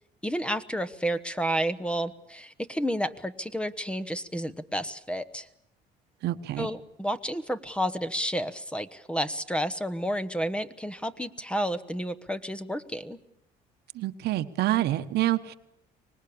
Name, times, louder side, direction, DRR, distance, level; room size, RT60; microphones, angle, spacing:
voice 1, 0.2-5.5 6.6-13.2, equal, 5° left, 10 dB, 1.0 m, -31 dB
voice 2, 6.2-6.7 13.9-15.5, right 14 dB, 75° right, 10 dB, 1.2 m, -27 dB
25.0 x 19.5 x 8.6 m, 0.79 s
cardioid pair, 110°, 17 cm